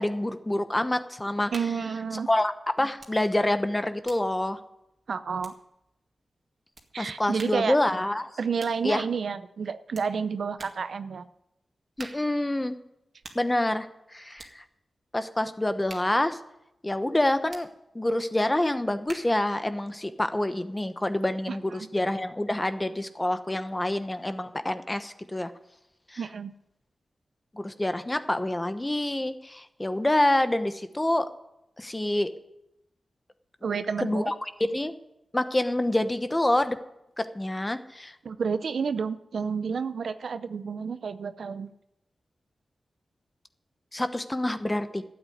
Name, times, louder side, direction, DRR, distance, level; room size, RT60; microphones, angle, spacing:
voice 1, 0.0-1.5 2.3-2.5 2.8-4.6 7.0-8.3 8.8-9.0 12.0-12.8 13.3-13.9 14.1-14.6 15.1-16.4 16.8-17.7 17.9-25.5 26.1-26.2 27.5-31.3 31.8-32.3 34.0-34.3 34.6-34.9 35.3-36.8 37.2-38.1 43.9-45.0, left 1 dB, 20° left, 10 dB, 1.0 m, -27 dB
sound 1, 1.5-1.9 3.0-3.2 3.5-5.9 6.7-6.9 7.4-7.7 8.6-8.9 9.9-10.1 10.6-10.9 12.0-12.4 13.2-13.5 14.3-14.6 15.9-16.2 17.5-17.7 19.1-19.4, right 3 dB, 50° right, 2.0 m, -47 dB
voice 2, 1.5-2.3 5.1-5.5 6.9-7.8 8.4-11.2 21.5-21.9 26.2-26.5 33.6-34.3 38.2-41.7, right 5 dB, 75° right, 12 dB, 0.7 m, -30 dB
12.5 x 8.6 x 9.3 m, 0.85 s
cardioid pair, 65°, 0 cm